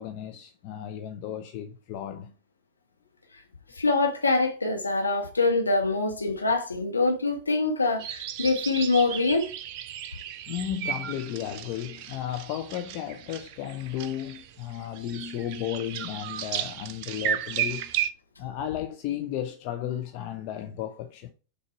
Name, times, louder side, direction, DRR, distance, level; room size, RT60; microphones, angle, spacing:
voice 1, 0.0-2.3 10.5-17.9 18.4-21.3, left 11 dB, 45° left, 0.6 m, -34 dB
voice 2, 3.7-9.5, left 3 dB, 80° left, 1.4 m, -24 dB
sound 1, 8.0-18.1, right 10 dB, 45° right, 0.7 m, -34 dB
6.5 x 4.0 x 4.6 m
figure-of-eight pair, 90°, 0 cm